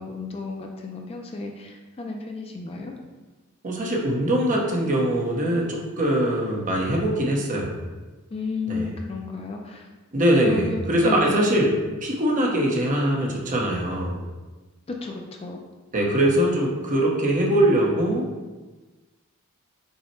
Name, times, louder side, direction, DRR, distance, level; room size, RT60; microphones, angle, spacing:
voice 1, 0.0-2.9 8.3-9.9 10.4-11.6 14.9-15.6, left 4 dB, 25° left, 2 dB, 0.3 m, -32 dB
voice 2, 3.6-7.8 8.7-8.9 10.1-11.7 12.0-14.3 15.9-18.3, right 1 dB, 35° right, -2 dB, 0.8 m, -22 dB
5.4 x 2.1 x 4.3 m, 1.2 s
head